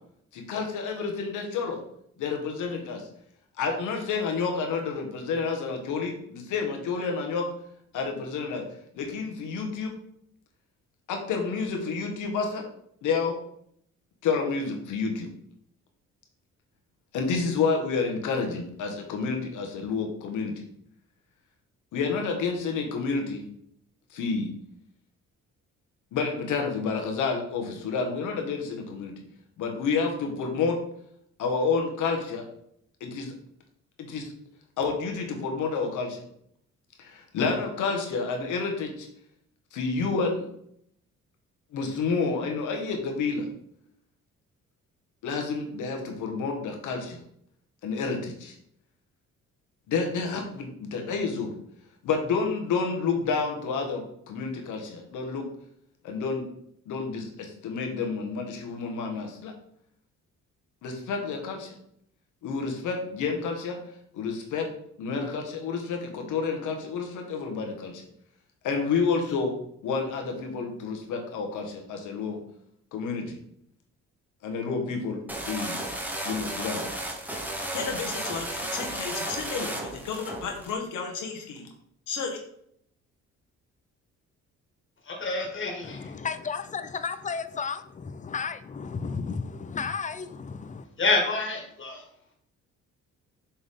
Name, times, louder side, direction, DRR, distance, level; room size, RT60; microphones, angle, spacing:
voice 1, 0.3-1.8 2.2-3.1 3.6-7.5 7.9-8.6 8.9-9.9 11.1-12.7 13.0-13.4 14.2-15.3 17.1-20.6 21.9-23.4 24.1-24.5 26.1-29.1 29.6-30.8 31.4-32.4 33.0-33.3 34.0-34.3 34.8-36.2 37.0-39.1 39.7-40.5 41.7-43.5 45.2-47.2 47.8-48.5 49.9-51.5 52.0-55.5 56.0-56.4 56.9-59.5 60.8-61.7 62.4-63.8 64.1-64.7 65.0-68.0 68.6-69.5 69.8-72.4 72.9-73.4 74.4-75.8 76.2-76.8 77.7-81.7 82.1-82.4, left 4 dB, 85° left, 1.4 m, -29 dB
sound 1, 75.3-80.7, right 1 dB, 5° right, 1.2 m, -33 dB
voice 2, 85.1-86.1 91.0-92.0, left 3 dB, 40° left, 1.9 m, -27 dB
voice 3, 85.8-90.8, left 5 dB, 25° left, 0.5 m, -33 dB
7.0 x 3.7 x 3.7 m
cardioid pair, 90°, 30 cm